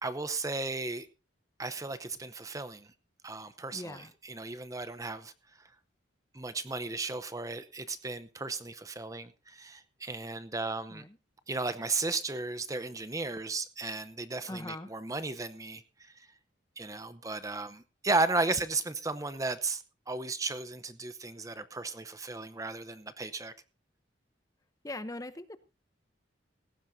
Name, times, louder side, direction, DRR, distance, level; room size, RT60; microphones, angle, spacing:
voice 1, 0.0-1.1 1.6-2.9 3.2-5.3 6.3-11.0 11.5-16.1 16.8-23.5, right 3 dB, 15° right, 0.7 m, -35 dB
voice 2, 3.7-4.1 10.9-11.2 14.5-14.9 24.8-25.6, left 1 dB, 15° left, 0.7 m, -41 dB
18.0 x 15.5 x 2.7 m
head